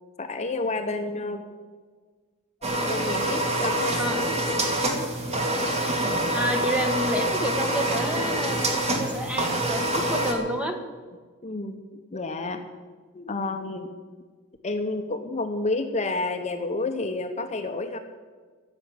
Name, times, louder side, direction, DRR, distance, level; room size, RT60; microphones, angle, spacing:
voice 1, 0.2-1.5 2.9-4.6 11.4-12.7 13.1-13.9 14.6-18.0, left 2 dB, 35° left, 6 dB, 0.8 m, -30 dB
sound 1, 2.6-10.3, right 1 dB, 30° right, 2.0 m, -26 dB
voice 2, 3.9-4.3 6.3-10.8, equal, 5° right, 4 dB, 1.3 m, -30 dB
14.0 x 7.1 x 9.8 m, 1.5 s
head